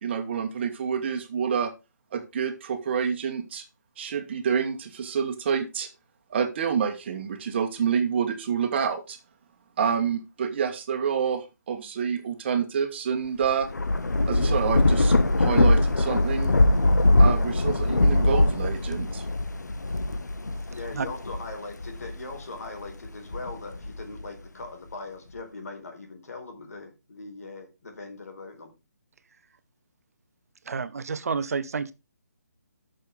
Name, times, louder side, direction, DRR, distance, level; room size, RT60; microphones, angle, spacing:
voice 1, 0.0-1.7 2.1-3.7 4.0-5.9 6.3-9.2 9.8-13.7 14.3-16.5 17.2-19.2, right 7 dB, 40° right, 1.8 m, -28 dB
Thunder / Rain, 13.4-22.3 22.9-24.2, left 2 dB, 90° left, 0.9 m, -22 dB
voice 2, 20.7-28.7, left 3 dB, 60° left, 4.5 m, -40 dB
voice 3, 30.6-31.9, right 5 dB, 60° right, 1.0 m, -29 dB
12.0 x 6.8 x 3.8 m
figure-of-eight pair, 150°, 9 cm